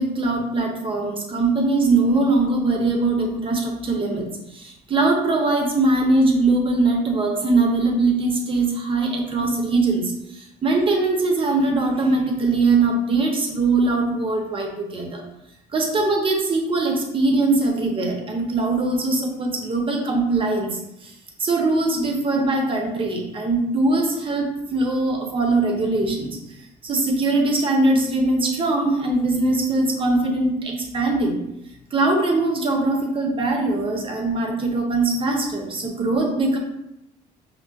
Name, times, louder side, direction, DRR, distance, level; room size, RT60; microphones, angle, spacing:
voice 1, 0.0-15.2 15.7-21.1 21.4-26.4 26.8-31.4 31.9-36.6, right 2 dB, 30° right, 1 dB, 0.7 m, -21 dB
5.1 x 2.0 x 2.3 m, 0.85 s
cardioid pair, 110°, 17 cm